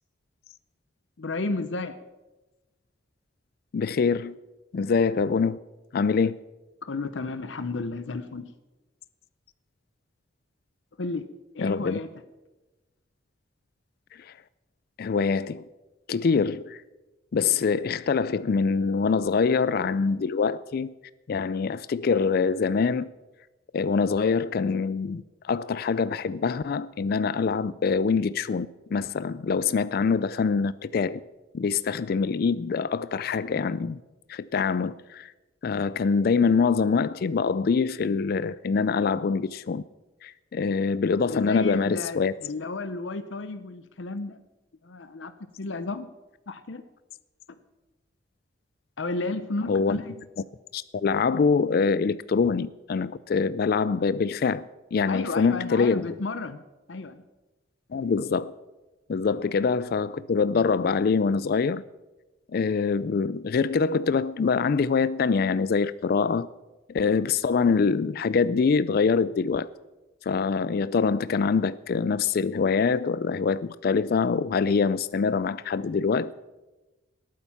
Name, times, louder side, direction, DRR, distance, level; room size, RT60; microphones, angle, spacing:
voice 1, 1.2-2.0 5.1-5.2 6.8-8.5 11.0-11.3 11.5-12.1 41.3-44.4 44.8-45.3 45.6-46.1 46.5-46.8 47.5-47.6 49.0-50.1 55.1-56.6 56.9-57.2, left 3 dB, 80° left, 0.7 m, -32 dB
voice 2, 3.7-4.4 4.7-5.6 5.9-6.4 11.6-12.0 14.1-14.3 15.0-15.7 16.1-16.8 17.3-20.9 21.3-23.1 23.7-31.2 31.5-34.0 34.3-35.3 35.6-39.8 40.2-42.3 49.7-50.0 50.7-56.1 57.9-58.5 59.1-61.8 62.5-66.5 66.9-69.7 70.2-76.3, left 5 dB, 55° left, 0.4 m, -24 dB
19.0 x 8.8 x 5.7 m
head